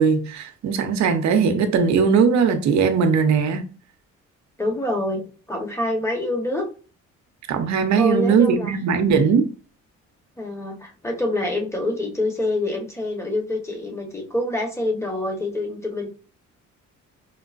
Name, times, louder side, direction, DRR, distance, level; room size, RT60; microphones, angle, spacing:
voice 1, 0.0-3.6 7.5-9.5, right 6 dB, 65° right, 0.7 m, -19 dB
voice 2, 4.6-6.6 7.9-8.7 10.4-16.1, left 1 dB, 10° left, 1.1 m, -26 dB
4.5 x 2.1 x 2.5 m
cardioid pair, 90°, 30 cm